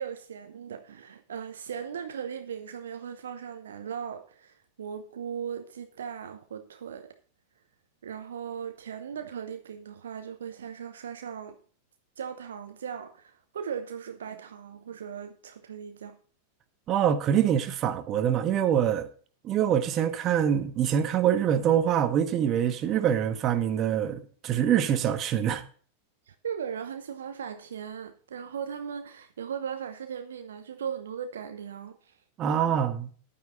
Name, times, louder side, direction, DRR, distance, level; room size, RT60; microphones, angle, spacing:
voice 1, 0.0-7.2 8.0-11.6 12.2-16.2 26.3-32.2 32.4-32.8, right 7 dB, 65° right, 0.9 m, -38 dB
voice 2, 16.9-19.1 19.4-25.6 32.4-33.1, right 9 dB, 35° right, 1.4 m, -25 dB
11.0 x 9.6 x 4.0 m
figure-of-eight pair, 90°, 0 cm